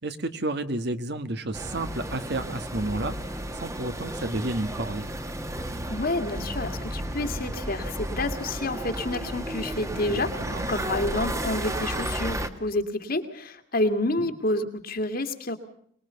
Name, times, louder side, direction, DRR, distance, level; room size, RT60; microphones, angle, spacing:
voice 1, 0.0-3.1 3.6-5.1 10.1-10.7 14.2-14.3, right 2 dB, 60° right, 10 dB, 1.6 m, -31 dB
sound 1, 1.5-12.5, right 1 dB, 15° right, 1.5 m, -33 dB
voice 2, 5.9-10.3 10.7-15.6, left 2 dB, 50° left, 7 dB, 2.3 m, -29 dB
24.5 x 20.5 x 7.0 m, 0.64 s
head